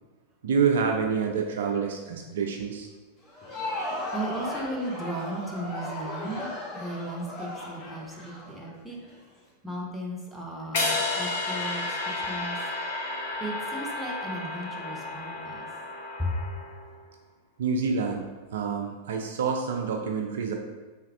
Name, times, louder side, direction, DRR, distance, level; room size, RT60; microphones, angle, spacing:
voice 1, 0.4-2.9 17.6-18.3 18.5-20.5, right 5 dB, 60° right, 2 dB, 0.3 m, -27 dB
Crowd, 3.2-9.1, left 2 dB, 30° left, 0.8 m, -36 dB
voice 2, 3.2-9.0 9.6-12.6 13.4-15.8 16.2-16.7, right 1 dB, ahead, -3 dB, 0.7 m, -36 dB
sound 1, 10.7-16.9, left 2 dB, 55° left, 0.6 m, -32 dB
3.3 x 2.3 x 3.3 m, 1.3 s
figure-of-eight pair, 90°, 0 cm